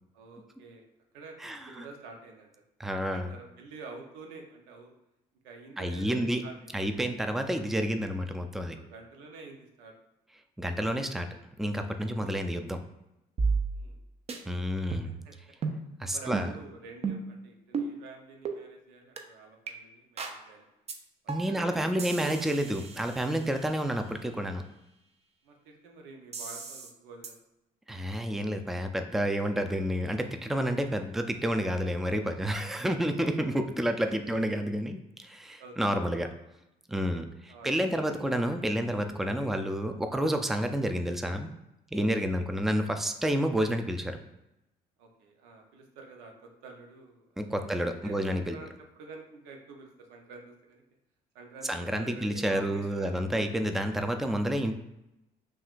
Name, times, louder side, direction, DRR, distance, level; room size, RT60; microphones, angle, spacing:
voice 1, 0.1-0.8 1.1-2.6 3.0-4.9 5.4-6.7 8.7-9.9 11.2-11.4 13.7-14.0 15.2-15.3 15.6-15.7 16.1-20.7 21.2-22.4 23.4-23.7 25.4-27.4 34.1-34.4 35.6-36.0 37.5-38.4 39.4-39.5 45.0-50.8 51.3-53.4, right 3 dB, 90° right, 2 dB, 0.8 m, -48 dB
voice 2, 1.4-1.9 2.8-3.3 5.8-6.4 6.7-8.8 10.6-11.3 11.6-12.8 14.5-15.1 16.0-16.5 21.3-24.6 27.9-36.3 36.9-41.5 41.9-44.2 47.4-48.6 51.7-54.7, equal, ahead, 6 dB, 0.4 m, -30 dB
sound 1, 13.4-14.0 14.3-14.4 14.9-15.3 15.6-15.8 16.3-16.5 17.0-17.3 17.7-17.9 18.4-18.6 19.2-19.3 19.7-19.8 20.2-20.4 20.9-21.0 21.3-21.6 22.0-23.8 26.3-26.9 27.2-27.3, right 4 dB, 40° right, 0.6 m, -33 dB
5.8 x 2.4 x 2.5 m, 0.90 s
supercardioid pair, 70°, 17 cm